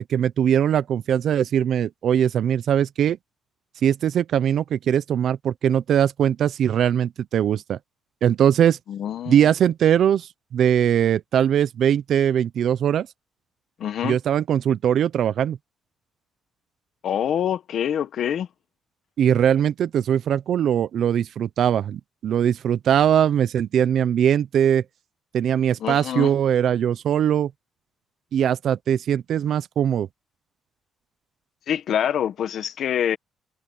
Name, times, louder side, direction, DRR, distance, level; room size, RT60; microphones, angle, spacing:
voice 1, 0.0-3.2 3.8-7.8 8.2-8.8 9.3-13.1 14.0-15.6 19.2-24.8 25.3-27.5 28.3-30.1, right 9 dB, 65° right, 0.7 m, -21 dB
voice 2, 8.9-9.5 13.8-14.2 17.0-18.5 25.8-26.3 31.7-33.2, left 9 dB, 65° left, 1.4 m, -25 dB
cardioid pair, 90°, 0 cm